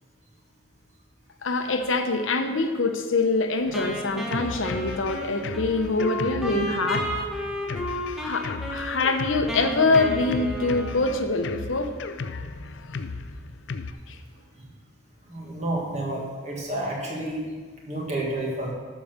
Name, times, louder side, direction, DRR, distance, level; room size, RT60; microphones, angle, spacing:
voice 1, 1.4-7.1 7.7-7.8 8.2-11.9 14.1-14.2, left 3 dB, 85° left, 6 dB, 1.0 m, -24 dB
Drum kit, 3.7-13.9, left 4 dB, 70° left, 0.5 m, -36 dB
Wind instrument woodwind instrument, 3.7-11.6, equal, ahead, 1.1 m, -33 dB
voice 2, 15.2-17.4 17.9-18.7, right 1 dB, 35° right, -3 dB, 1.8 m, -30 dB
12.5 x 5.0 x 6.5 m, 1.5 s
head